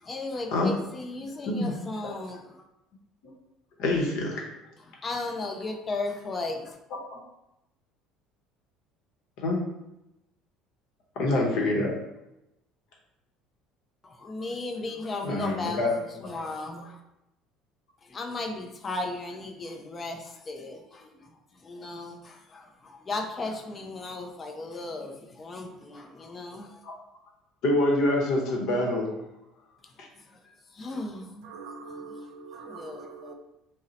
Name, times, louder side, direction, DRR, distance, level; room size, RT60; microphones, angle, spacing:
voice 1, 0.0-2.6 5.0-6.7 14.0-17.0 18.1-21.3 21.6-26.8 30.5-31.6 32.6-33.3, left 2 dB, 25° left, 0.4 m, -36 dB
voice 2, 1.5-1.9 3.8-4.4 7.1-7.2 9.4-9.6 11.2-11.9 15.2-15.9 26.8-26.9 27.6-29.1, left 2 dB, 60° left, 0.8 m, -25 dB
voice 3, 31.4-33.3, right 4 dB, 85° right, 0.4 m, -43 dB
2.7 x 2.0 x 3.9 m
cardioid pair, 140°, 0 cm